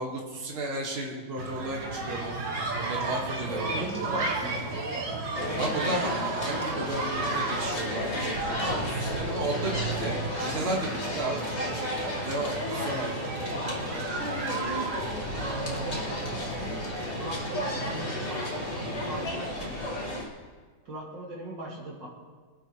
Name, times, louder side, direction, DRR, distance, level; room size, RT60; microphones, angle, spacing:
voice 1, 0.0-2.3 2.8-4.3 5.6-11.5 12.0-13.2, right 1 dB, 30° right, -2 dB, 2.0 m, -34 dB
sound 1, 1.4-19.3, right 3 dB, 80° right, 2.6 m, -34 dB
voice 2, 3.3-5.2 5.4-6.0 12.7-13.0 13.5-13.8 15.3-16.8 17.2-19.9 20.8-22.1, right 1 dB, 65° right, -4 dB, 3.2 m, -39 dB
sound 2, 5.3-20.3, left 1 dB, 35° left, 2.6 m, -33 dB
26.5 x 9.1 x 3.3 m, 1.5 s
omnidirectional pair, 2.2 m